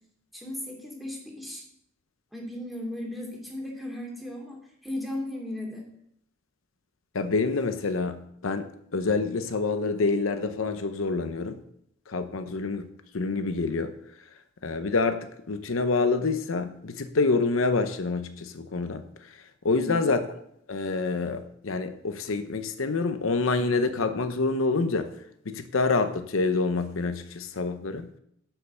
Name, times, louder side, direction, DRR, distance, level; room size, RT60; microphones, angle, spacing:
voice 1, 0.3-1.6 2.3-5.8 19.7-20.0, left 1 dB, ahead, -2 dB, 2.5 m, -36 dB
voice 2, 7.1-11.6 12.1-12.9 13.1-13.9 14.6-19.4 19.6-20.2 20.7-25.1 25.5-28.1, left 3 dB, 75° left, 10 dB, 0.7 m, -27 dB
10.5 x 5.4 x 6.9 m, 0.73 s
head